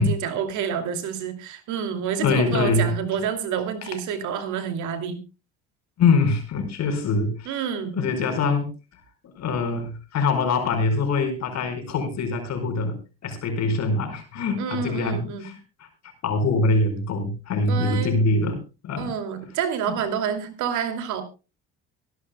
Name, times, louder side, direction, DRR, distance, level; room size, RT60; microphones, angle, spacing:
voice 1, 0.0-5.2 7.4-8.0 14.6-15.4 17.7-18.2 19.0-21.2, right 7 dB, 65° right, 8 dB, 2.6 m, -28 dB
voice 2, 2.2-2.9 6.0-7.6 7.9-8.7 9.3-13.0 13.2-15.5 16.2-18.6 18.8-19.1, left 3 dB, 55° left, 6 dB, 5.0 m, -23 dB
24.0 x 11.0 x 2.2 m, 0.31 s
hypercardioid pair, 60°, 32 cm